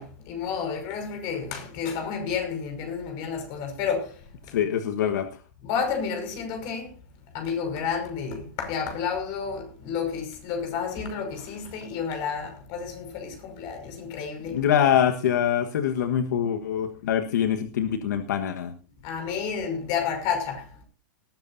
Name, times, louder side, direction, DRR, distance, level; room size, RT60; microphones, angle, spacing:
voice 1, 0.0-4.6 5.6-6.9 7.3-14.7 19.0-20.8, left 6 dB, 45° left, 5.7 m, -31 dB
voice 2, 4.5-5.3 14.5-18.7, left 9 dB, 75° left, 1.5 m, -24 dB
19.5 x 13.0 x 2.7 m
hypercardioid pair, 140°, 10 cm